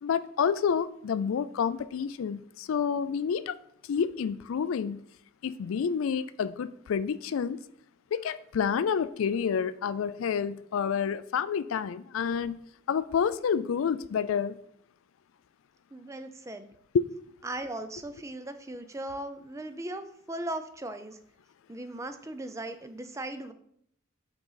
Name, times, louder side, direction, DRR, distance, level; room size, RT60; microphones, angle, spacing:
voice 1, 0.0-3.5 3.9-5.0 5.4-7.6 8.1-12.6 12.9-14.6 16.9-17.1, left 7 dB, 85° left, 15 dB, 0.4 m, -29 dB
voice 2, 15.9-16.7 17.4-21.2 21.7-23.5, right 1 dB, 15° right, 9 dB, 0.4 m, -38 dB
5.8 x 3.9 x 5.6 m, 0.69 s
head